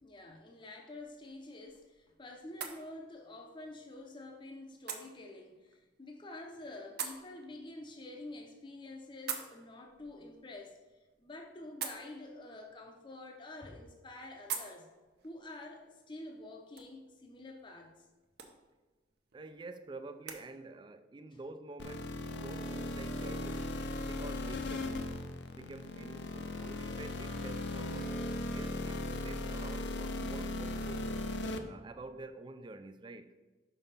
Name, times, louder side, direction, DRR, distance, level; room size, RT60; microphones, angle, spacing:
voice 1, 0.0-10.8 11.2-14.9 15.2-18.1 21.3-21.4, left 2 dB, 25° left, 0.6 m, -48 dB
sound 1, 0.9-20.4, right 7 dB, 60° right, 0.7 m, -48 dB
voice 2, 19.3-23.7 24.0-25.0 25.5-28.2 28.5-31.1 31.7-33.4, right 2 dB, 25° right, 0.3 m, -48 dB
sound 2, 21.8-31.6, left 2 dB, 70° left, 0.6 m, -38 dB
5.7 x 5.4 x 4.2 m
head